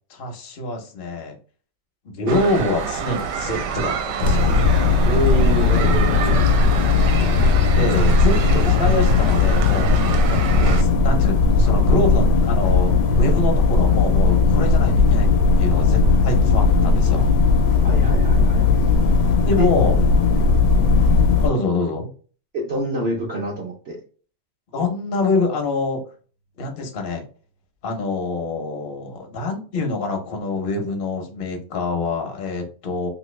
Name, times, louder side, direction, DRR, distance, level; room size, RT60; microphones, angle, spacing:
voice 1, 0.1-1.4 2.0-4.6 7.7-15.3 15.6-17.3 19.5-20.0 21.4-22.1 24.7-26.0 26.6-27.2 27.8-33.1, left 3 dB, 50° left, 3 dB, 0.6 m, -25 dB
sound 1, 2.3-10.8, right 7 dB, 75° right, 1.2 m, -28 dB
sound 2, 4.2-21.5, left 4 dB, 75° left, 1.2 m, -17 dB
voice 2, 5.0-6.4 17.8-18.6 19.6-19.7 22.5-24.0, equal, 60° right, -2 dB, 0.6 m, -26 dB
2.9 x 2.8 x 3.1 m, 0.40 s
omnidirectional pair, 2.0 m